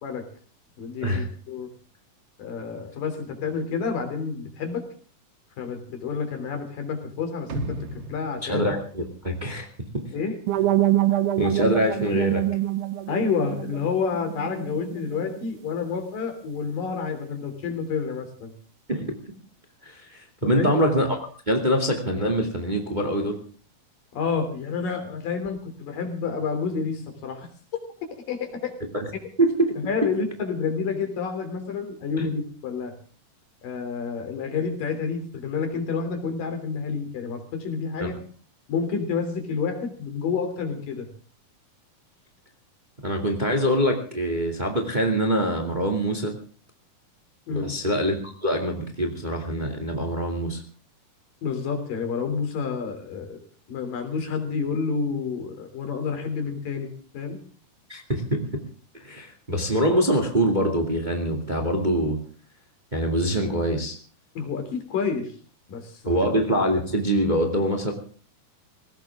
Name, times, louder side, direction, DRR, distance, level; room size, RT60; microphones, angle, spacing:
voice 1, 0.8-1.7 2.4-4.8 5.6-8.7 10.1-10.3 13.1-18.5 20.4-20.8 24.1-27.5 28.3-28.7 29.8-32.9 33.6-38.2 38.7-41.1 47.5-47.8 51.4-53.4 53.7-57.4 64.3-65.3 65.7-66.0, left 5 dB, 75° left, 5 dB, 4.8 m, -29 dB
sound 1, 7.5-9.7 10.0-10.1, right 1 dB, 50° right, 1.5 m, -36 dB
voice 2, 8.4-9.7 11.4-12.4 18.9-19.1 19.8-21.1 21.5-23.4 28.9-29.1 29.4-29.7 30.0-30.1 32.2-32.3 38.0-38.1 43.0-46.3 47.5-50.6 57.9-58.6 59.0-62.2 62.9-64.0 66.0-67.9, equal, 15° right, 4 dB, 2.1 m, -24 dB
sound 2, 10.5-15.4, right 14 dB, 70° right, 2.3 m, -25 dB
20.0 x 17.5 x 3.7 m, 0.41 s
omnidirectional pair, 3.9 m